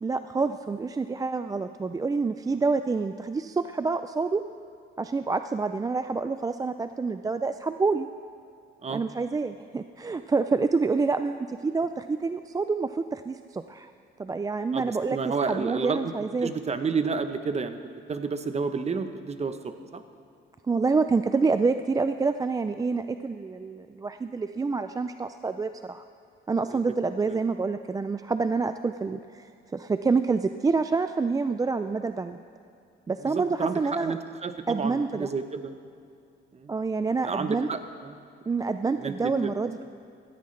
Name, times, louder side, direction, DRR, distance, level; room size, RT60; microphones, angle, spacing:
voice 1, 0.0-4.4 5.0-8.1 8.9-13.9 14.2-16.5 20.7-26.0 26.5-32.4 33.1-34.1 34.7-35.3 36.7-37.7 38.5-39.8, right 4 dB, 20° right, 9 dB, 0.3 m, -27 dB
voice 2, 14.7-16.1 16.4-17.8 18.1-20.0 26.7-26.8 27.3-27.4 33.2-35.7 36.5-36.7 37.2-38.2 39.0-39.5, right 5 dB, 35° right, 9 dB, 0.9 m, -31 dB
16.5 x 14.0 x 3.2 m, 2.5 s
cardioid pair, 90°, 20 cm